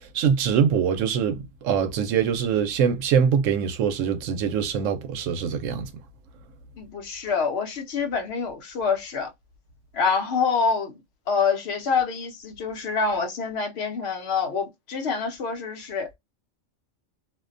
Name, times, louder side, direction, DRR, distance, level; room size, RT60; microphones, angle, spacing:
voice 1, 0.1-5.9, right 7 dB, 85° right, 0.9 m, -23 dB
voice 2, 6.8-9.3 9.9-11.0 11.3-16.2, left 5 dB, 60° left, 0.9 m, -26 dB
2.5 x 2.1 x 2.4 m
omnidirectional pair, 1.3 m